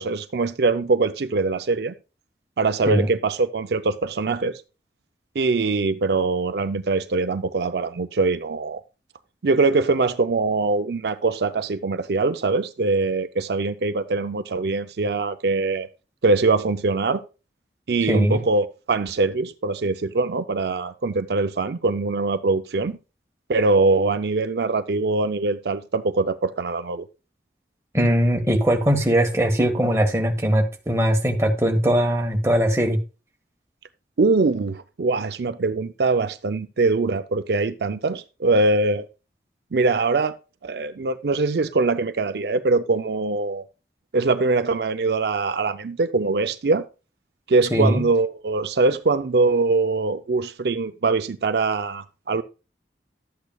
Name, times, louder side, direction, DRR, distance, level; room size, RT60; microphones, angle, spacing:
voice 1, 0.0-1.9 2.6-4.6 5.4-8.8 9.4-15.9 16.2-17.2 17.9-23.0 23.5-27.1 34.2-39.1 39.7-40.3 40.6-43.6 44.1-46.8 47.5-52.4, right 3 dB, 70° right, 0.5 m, -22 dB
voice 2, 18.1-18.4 27.9-33.0 47.7-48.0, equal, 15° right, 1.4 m, -20 dB
12.0 x 8.2 x 2.3 m
head